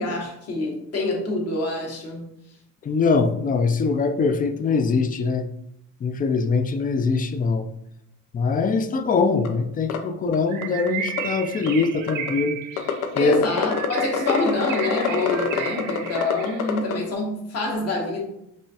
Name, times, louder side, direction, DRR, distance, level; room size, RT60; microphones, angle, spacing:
voice 1, 0.0-2.3 13.2-18.2, left 2 dB, 55° left, 1.3 m, -26 dB
voice 2, 2.8-5.5 6.0-7.7 8.3-12.6 13.1-13.4, left 4 dB, 30° left, 0.4 m, -22 dB
sound 1, 9.4-9.5 9.9-10.0 10.3-10.4 10.6-11.2 11.7-12.3 12.8-16.9, left 8 dB, 75° left, 0.6 m, -24 dB
Bird, 10.5-16.8, right 8 dB, 80° right, 0.5 m, -34 dB
4.8 x 2.5 x 2.8 m
cardioid pair, 90°, 30 cm